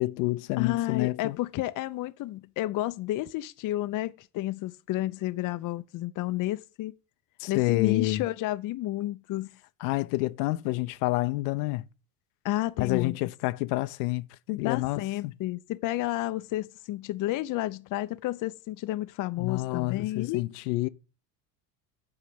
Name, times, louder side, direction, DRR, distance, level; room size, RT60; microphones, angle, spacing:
voice 1, 0.0-1.4 7.4-8.2 9.8-11.8 12.8-15.3 19.4-20.9, left 20 dB, 70° left, 0.8 m, -28 dB
voice 2, 0.6-6.9 7.5-9.5 12.4-13.2 14.6-20.4, left 16 dB, 40° left, 0.7 m, -31 dB
8.7 x 4.9 x 7.7 m
hypercardioid pair, 90°, 49 cm